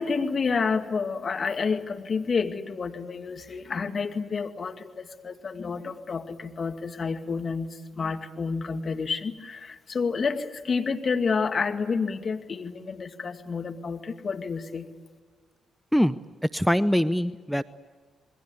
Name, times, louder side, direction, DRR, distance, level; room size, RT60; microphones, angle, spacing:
voice 1, 0.0-14.9, left 5 dB, 45° left, 6 dB, 2.3 m, -29 dB
voice 2, 16.5-17.6, equal, ahead, 14 dB, 0.8 m, -23 dB
28.0 x 21.5 x 8.3 m, 1.5 s
hypercardioid pair, 40°, 0 cm